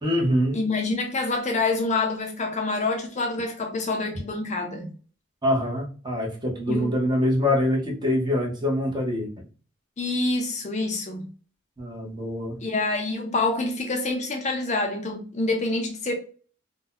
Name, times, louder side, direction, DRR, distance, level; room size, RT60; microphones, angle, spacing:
voice 1, 0.0-0.6 5.4-9.3 11.8-12.6, left 1 dB, 20° right, 0.9 m, -24 dB
voice 2, 0.5-4.9 6.7-6.9 10.0-11.3 12.6-16.1, left 3 dB, 35° left, 0.5 m, -27 dB
2.7 x 2.2 x 3.9 m
head